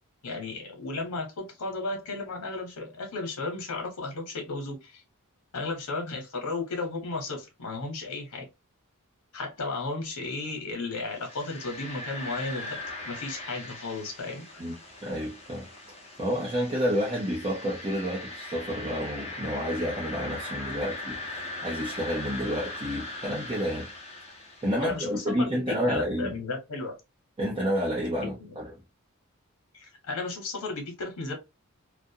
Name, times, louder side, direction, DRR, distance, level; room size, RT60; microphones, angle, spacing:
voice 1, 0.2-5.0 5.5-8.5 9.3-12.8 13.1-14.5 24.8-26.9 28.2-28.5 29.7-31.3, left 3 dB, 90° left, 0.9 m, -34 dB
sound 1, 11.1-25.0, left 2 dB, 30° left, 0.8 m, -40 dB
voice 2, 15.0-15.7 16.2-23.9 24.6-26.3 27.4-28.7, equal, 25° right, 0.7 m, -30 dB
2.4 x 2.1 x 2.7 m
head